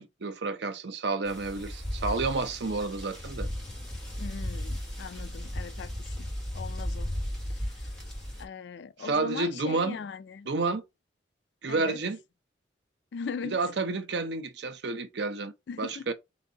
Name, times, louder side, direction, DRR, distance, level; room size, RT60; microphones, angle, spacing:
voice 1, 0.0-3.5 9.0-10.0 10.5-10.8 11.6-12.2 13.4-15.5 15.8-16.1, right 3 dB, 65° right, 0.6 m, -30 dB
sound 1, 1.2-8.4, equal, 5° left, 1.3 m, -35 dB
voice 2, 4.2-5.9 6.2-6.3 6.5-7.1 8.4-10.5 11.7-12.0 13.1-13.6 15.7-16.1, left 5 dB, 70° left, 0.4 m, -39 dB
4.1 x 2.6 x 3.9 m
head